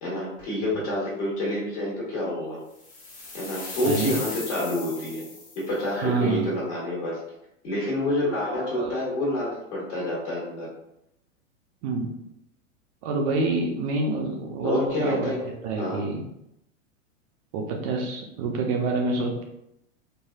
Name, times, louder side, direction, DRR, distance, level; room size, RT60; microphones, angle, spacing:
voice 1, 0.0-2.6 3.3-5.3 5.5-7.2 7.6-10.7 14.6-15.5 15.8-16.0, left 1 dB, 60° left, -5 dB, 1.4 m, -28 dB
sound 1, 2.8-5.8, left 3 dB, 20° left, 0.7 m, -37 dB
voice 2, 3.8-4.2 6.0-6.5 8.7-8.9 11.8-12.1 13.0-15.3 15.6-16.2 17.5-19.4, right 3 dB, 30° right, 1 dB, 0.4 m, -27 dB
3.3 x 2.3 x 2.3 m, 0.82 s
hypercardioid pair, 110°, 39 cm